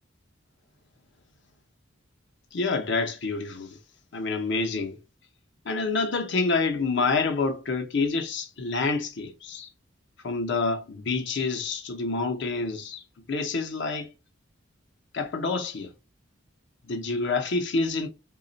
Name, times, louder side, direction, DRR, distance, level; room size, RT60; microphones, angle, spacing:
voice 1, 2.5-3.8 4.1-5.0 5.6-9.7 10.2-13.0 13.3-14.1 15.1-15.9 16.9-18.1, left 3 dB, 65° left, 0.8 m, -27 dB
3.2 x 2.4 x 3.9 m
head